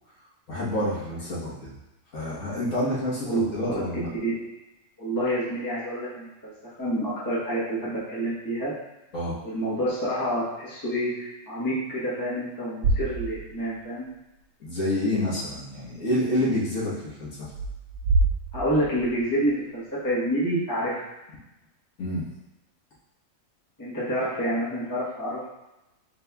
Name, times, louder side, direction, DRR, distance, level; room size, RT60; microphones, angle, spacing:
voice 1, 0.5-1.7 2.1-4.1 9.1-9.4 14.6-17.5 22.0-22.2, left 1 dB, 70° left, -8 dB, 1.6 m, -28 dB
voice 2, 5.0-8.7 9.4-14.1 18.5-21.0 23.8-25.5, right 1 dB, 15° left, -7 dB, 0.9 m, -28 dB
sound 1, 12.8-13.8 14.1-14.2 17.4-19.5, right 3 dB, 80° right, 1.1 m, -27 dB
4.2 x 4.1 x 2.2 m, 0.97 s
omnidirectional pair, 1.4 m